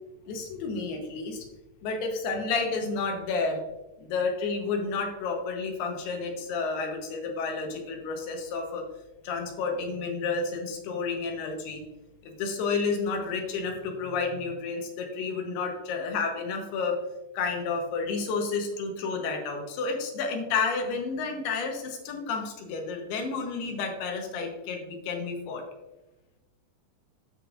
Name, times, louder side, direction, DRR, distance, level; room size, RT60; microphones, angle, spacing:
voice 1, 0.3-1.5 1.8-3.6 4.0-8.8 9.2-11.8 12.2-17.0 17.3-25.6, left 4 dB, 80° left, 3 dB, 3.0 m, -31 dB
13.0 x 5.0 x 2.5 m, 1.0 s
omnidirectional pair, 4.6 m